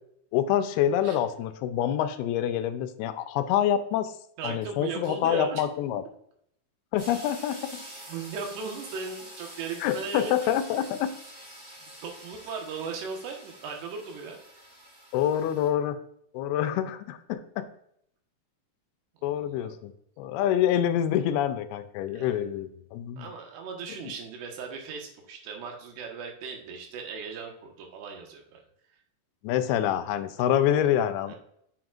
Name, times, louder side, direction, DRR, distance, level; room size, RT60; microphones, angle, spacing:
voice 1, 0.3-4.1 4.4-6.0 6.9-7.8 9.8-11.1 15.1-16.0 16.3-17.7 19.2-23.3 29.4-31.4, left 10 dB, 80° left, 10 dB, 2.5 m, -26 dB
voice 2, 4.4-5.6 8.1-10.5 12.0-14.4 19.3-19.7 22.1-22.6 23.2-28.6 31.3-31.4, right 5 dB, 90° right, 2 dB, 3.5 m, -37 dB
sound 1, 7.0-15.7, equal, 25° right, 2.5 m, -46 dB
7.7 x 7.1 x 2.4 m, 0.70 s
omnidirectional pair, 4.6 m